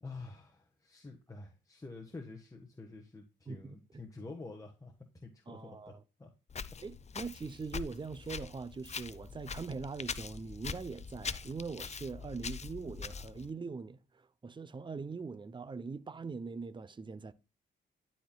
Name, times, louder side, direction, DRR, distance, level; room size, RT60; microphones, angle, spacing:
voice 1, 0.0-4.9 5.2-5.9 6.2-6.3, left 3 dB, 15° left, 1.3 m, -48 dB
voice 2, 3.5-4.0 5.5-6.0 6.8-17.3, right 4 dB, 25° right, 0.6 m, -42 dB
Walk footsteps, 6.5-13.5, left 6 dB, 35° left, 0.6 m, -43 dB
12.0 x 4.4 x 2.3 m
supercardioid pair, 60°, 19 cm